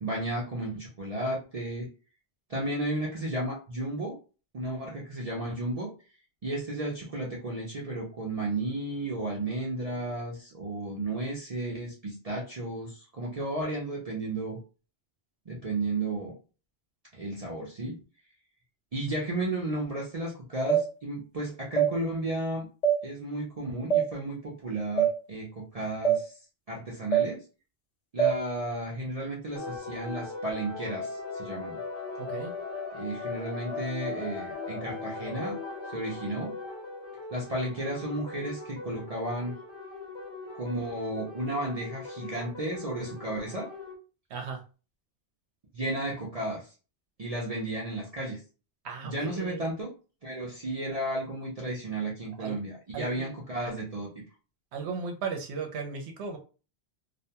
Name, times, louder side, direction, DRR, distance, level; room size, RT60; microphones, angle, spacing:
voice 1, 0.0-1.9 2.5-4.2 4.5-5.9 6.4-14.6 15.5-16.3 17.1-18.0 18.9-22.7 23.0-26.4 26.7-27.4 28.1-31.8 32.9-35.6 35.9-36.5 37.3-39.5 40.6-43.7 45.7-46.7 47.2-48.4 49.0-49.9 50.2-54.1, right 1 dB, 45° right, -3 dB, 0.5 m, -33 dB
sound 1, 20.7-20.8 21.8-21.9 22.8-23.0 23.9-24.1 25.0-25.1 26.0-26.2 27.1-27.3 28.2-28.3, right 8 dB, 60° left, 0.4 m, -22 dB
sound 2, 29.6-43.9, left 4 dB, 75° left, 1.1 m, -39 dB
voice 2, 32.2-32.5 44.3-44.6 48.8-49.6 52.4-52.6 52.9-53.3 54.7-56.4, right 5 dB, 75° right, 3 dB, 0.8 m, -36 dB
2.5 x 2.2 x 2.7 m, 0.35 s
omnidirectional pair, 1.2 m